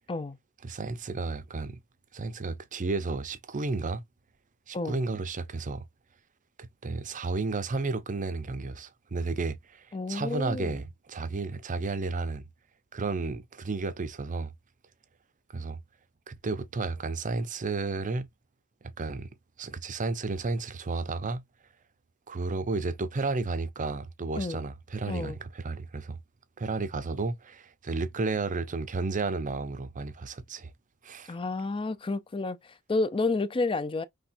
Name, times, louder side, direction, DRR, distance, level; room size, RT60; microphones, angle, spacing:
voice 1, 0.6-1.8 2.1-4.0 4.7-5.9 6.6-12.4 12.9-14.5 15.5-15.8 16.3-18.3 18.8-19.3 19.6-21.4 22.3-26.2 26.6-30.7 31.0-31.3, right 3 dB, 35° right, 0.6 m, -32 dB
voice 2, 9.9-10.8 24.4-24.6 25.1-25.4 31.3-34.0, left 3 dB, 25° left, 0.4 m, -30 dB
5.6 x 3.4 x 2.5 m
head